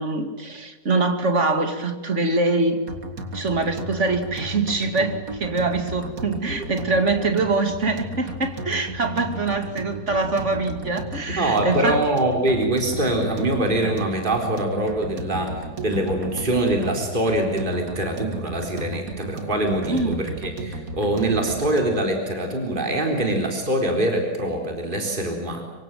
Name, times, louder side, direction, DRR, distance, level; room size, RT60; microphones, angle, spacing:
voice 1, 0.0-2.9 3.3-12.0 19.9-20.3, right 3 dB, 50° right, 2.8 m, -24 dB
sound 1, 2.9-22.1, right 2 dB, 65° right, 2.7 m, -34 dB
voice 2, 11.4-25.6, right 1 dB, 30° right, 4.2 m, -24 dB
26.0 x 24.5 x 7.7 m
omnidirectional pair, 1.6 m